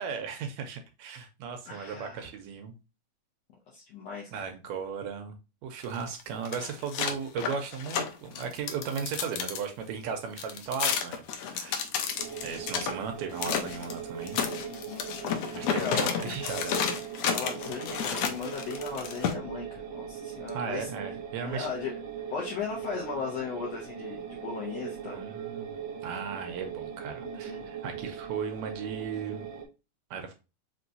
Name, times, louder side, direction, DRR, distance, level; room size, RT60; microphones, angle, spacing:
voice 1, 0.0-2.7 4.3-5.4 5.6-11.2 11.5-11.9 12.4-14.4 15.6-16.8 20.5-21.7 25.1-25.7 26.0-29.5 30.1-30.3, right 6 dB, 80° right, 6 dB, 1.7 m, -36 dB
voice 2, 1.7-2.3 3.7-4.3 14.6-15.1 15.7-16.1 17.3-20.9 21.4-21.9 22.3-25.2 27.2-27.7, left 5 dB, 65° left, -3 dB, 1.8 m, -37 dB
sound 1, 5.8-9.6 10.4-12.9 13.4-13.9 14.3-19.3, left 7 dB, 80° left, 1.5 m, -31 dB
sound 2, 12.2-29.6, right 8 dB, 65° right, 1.2 m, -40 dB
5.3 x 3.0 x 2.6 m, 0.29 s
omnidirectional pair, 3.6 m